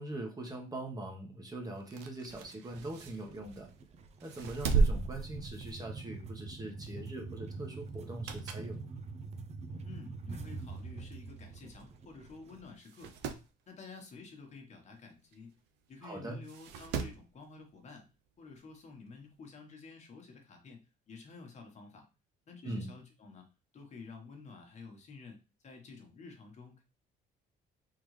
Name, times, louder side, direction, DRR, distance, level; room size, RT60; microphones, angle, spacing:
voice 1, 0.0-3.7 4.2-8.9 16.0-16.4 22.6-22.9, right 1 dB, 20° right, 2 dB, 1.1 m, -42 dB
sound 1, 1.8-3.7 4.2-6.1 6.5-6.7 8.0-8.8 9.2-9.3 10.2-10.3 10.6-10.7 10.8-10.9 11.8-12.0 12.3-12.4 12.8-13.5 15.3-15.4 16.4-17.3 18.6-18.7, right 4 dB, 85° right, 0.6 m, -35 dB
sound 2, 2.3-12.7, right 4 dB, 40° right, 0.5 m, -45 dB
voice 2, 9.8-13.1 13.7-15.5 15.9-18.1 18.4-22.1 22.5-23.5 23.7-25.4 25.6-26.8, left 4 dB, 45° left, 3 dB, 1.3 m, -51 dB
3.8 x 3.3 x 3.2 m, 0.30 s
cardioid pair, 110°, 17 cm